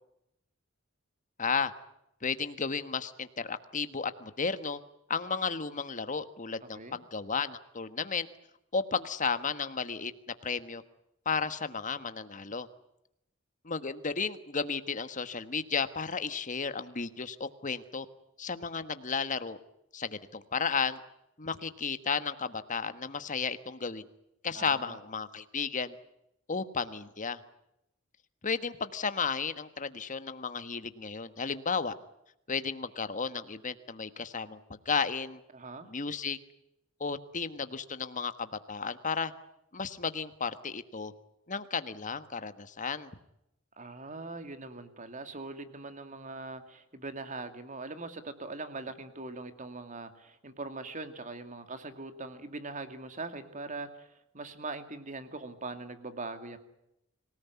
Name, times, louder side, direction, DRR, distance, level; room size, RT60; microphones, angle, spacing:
voice 1, 1.4-1.7 2.2-4.8 5.1-8.3 8.7-10.1 10.4-10.8 11.2-12.7 13.6-18.1 18.4-19.6 19.9-21.0 21.4-24.0 24.4-25.9 26.5-27.4 28.4-31.9 32.5-34.6 34.8-35.4 35.9-36.4 37.0-39.3 39.7-41.1 41.5-43.1, left 5 dB, 40° left, 11 dB, 1.4 m, -33 dB
voice 2, 24.5-25.0 35.5-35.9 43.8-54.1 54.3-56.6, right 3 dB, 40° right, 9 dB, 2.4 m, -41 dB
25.5 x 18.0 x 9.4 m, 0.83 s
head